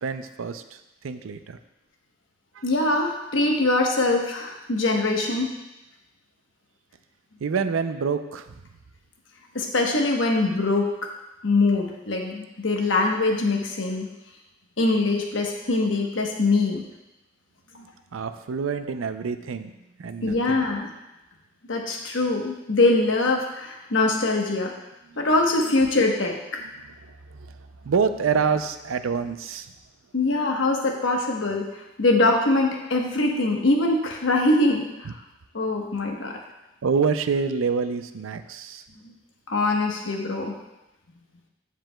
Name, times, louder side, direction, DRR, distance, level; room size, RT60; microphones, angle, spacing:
voice 1, 0.0-1.6 2.5-2.6 7.4-8.5 18.1-19.7 20.0-20.6 25.1-25.3 26.8-29.7 35.0-35.1 36.8-38.8, right 5 dB, 85° right, 10 dB, 0.5 m, -27 dB
voice 2, 2.6-5.5 9.5-10.9 11.4-14.1 14.8-16.8 17.7-17.8 20.2-20.9 21.7-24.7 25.2-26.3 30.1-35.1 35.5-36.3 39.0-39.1 39.5-40.5, left 2 dB, 70° left, 1 dB, 1.1 m, -23 dB
15.0 x 5.0 x 2.3 m, 0.97 s
head